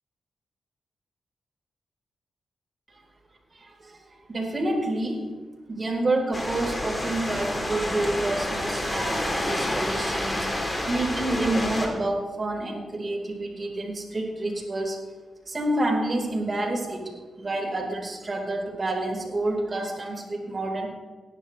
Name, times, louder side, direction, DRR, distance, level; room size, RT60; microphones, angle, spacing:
voice 1, 3.8-5.3 5.7-10.5 10.9-15.0 15.5-17.1 17.4-20.9, right 2 dB, 40° right, 0 dB, 4.7 m, -28 dB
sound 1, 6.3-11.9, left 1 dB, 25° left, 3.5 m, -29 dB
18.5 x 11.0 x 3.4 m, 1.4 s
cardioid pair, 55°, 0 cm